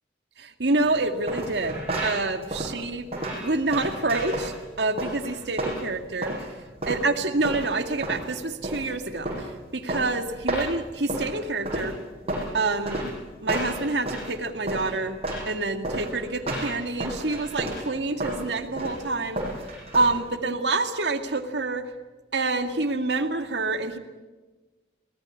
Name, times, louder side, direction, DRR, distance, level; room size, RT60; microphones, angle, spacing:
voice 1, 0.4-3.1 3.4-6.5 6.9-12.0 12.5-13.0 13.4-15.2 15.5-19.4 19.9-21.8 22.3-24.0, right 3 dB, 75° right, 7 dB, 2.1 m, -27 dB
sound 1, 0.8-20.4, right 1 dB, 35° right, 7.6 m, -32 dB
24.0 x 19.5 x 9.8 m, 1.3 s
head